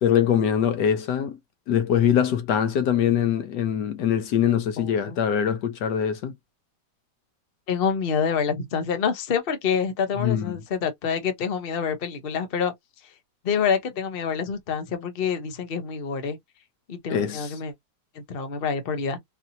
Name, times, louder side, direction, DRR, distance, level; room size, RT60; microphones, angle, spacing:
voice 1, 0.0-1.4 1.7-6.3 10.2-10.6 17.1-17.5, left 9 dB, 75° left, 1.3 m, -23 dB
voice 2, 4.8-5.2 7.7-12.7 13.4-16.4 16.9-17.7 18.1-19.2, left 6 dB, 40° left, 0.9 m, -27 dB
4.0 x 2.7 x 2.8 m
omnidirectional pair, 1.9 m